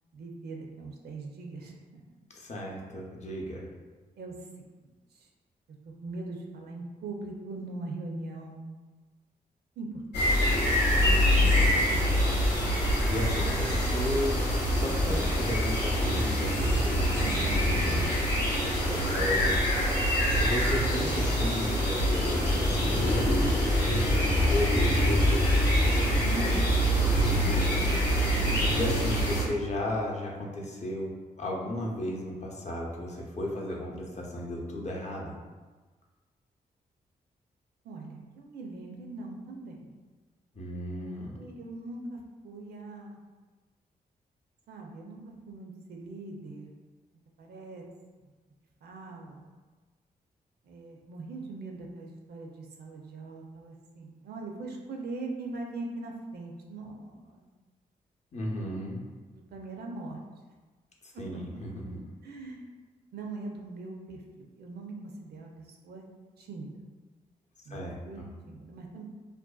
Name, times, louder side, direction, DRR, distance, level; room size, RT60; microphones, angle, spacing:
voice 1, 0.1-2.0 4.2-4.3 5.9-8.6 9.8-10.2 17.2-17.6 26.2-26.6 28.2-28.6 37.8-39.8 41.4-43.2 44.7-45.2 45.5-46.7 47.4-47.8 48.8-49.5 50.7-57.4 59.3-60.2 62.2-62.7 63.1-64.2 64.6-65.0 65.2-66.0 66.4-66.8 67.7-67.8 68.1-69.0, right 2 dB, 70° right, 1 dB, 0.4 m, -41 dB
voice 2, 2.3-3.7 10.9-12.1 13.1-14.4 14.7-17.1 17.6-18.0 18.6-19.6 20.4-24.0 24.3-24.8 27.2-35.4 40.5-41.4 58.3-59.0 61.2-62.0 67.7-68.3, left 1 dB, 40° left, -2 dB, 0.6 m, -35 dB
sound 1, 10.1-29.4, equal, 85° left, 0.6 m, -25 dB
2.5 x 2.1 x 2.2 m, 1.3 s
supercardioid pair, 45°, 17 cm